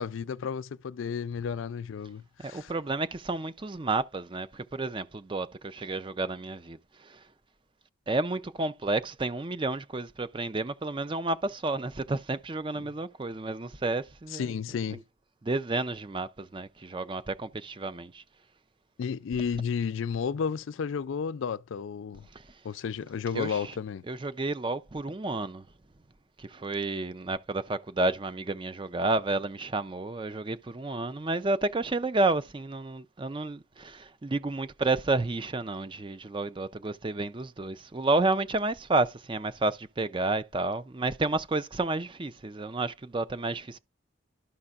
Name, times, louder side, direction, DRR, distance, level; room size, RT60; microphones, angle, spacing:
voice 1, 0.0-2.7 14.3-15.0 19.0-22.2 22.6-24.0, left 6 dB, 80° left, 0.4 m, -32 dB
voice 2, 2.4-7.3 8.1-14.5 14.9-15.0 15.4-18.2 22.3-22.6 23.3-23.8 24.1-25.7 26.4-43.8, right 2 dB, 25° right, 0.5 m, -31 dB
12.5 x 5.5 x 2.4 m
head